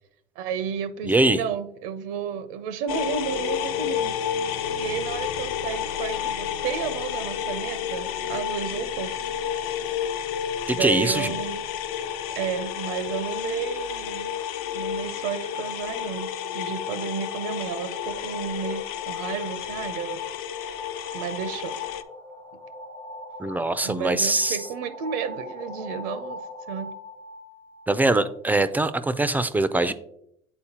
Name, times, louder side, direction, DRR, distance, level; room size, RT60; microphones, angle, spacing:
voice 1, 0.4-4.5 4.8-9.1 10.7-11.6 12.4-14.3 14.7-20.2 20.5-20.8 21.1-21.8 23.8-26.4 26.7-26.9, right 7 dB, 80° right, 12 dB, 0.5 m, -32 dB
voice 2, 1.1-1.4 10.8-11.3 23.4-24.6 27.9-29.9, right 2 dB, 10° right, 13 dB, 0.3 m, -22 dB
sound 1, 2.9-22.0, left 9 dB, 65° left, 0.5 m, -31 dB
sound 2, 17.9-28.4, left 1 dB, 25° left, 0.7 m, -42 dB
8.8 x 4.2 x 2.8 m, 0.72 s
cardioid pair, 120°, 17 cm